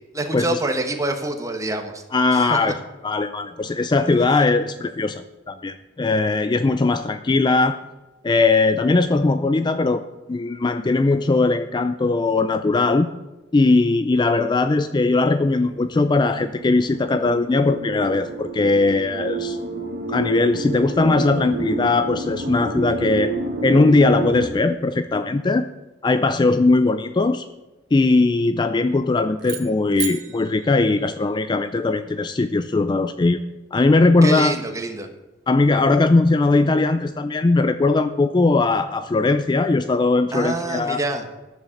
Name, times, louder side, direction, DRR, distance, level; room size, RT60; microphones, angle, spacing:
voice 1, 0.1-2.0 2.3-2.6 34.2-35.1 40.3-41.2, right 2 dB, 15° right, 4 dB, 1.2 m, -26 dB
voice 2, 2.1-2.8 3.0-7.8 8.2-10.0 10.3-13.1 13.5-19.6 20.1-23.3 23.6-25.7 26.0-27.5 27.9-33.4 33.7-34.5 35.5-41.0, left 3 dB, 25° left, 11 dB, 0.4 m, -19 dB
sound 1, 14.8-24.5, right 3 dB, 50° right, 1.7 m, -30 dB
sound 2, 29.4-31.7, right 11 dB, 70° right, 1.1 m, -35 dB
10.5 x 7.3 x 7.1 m, 1.1 s
head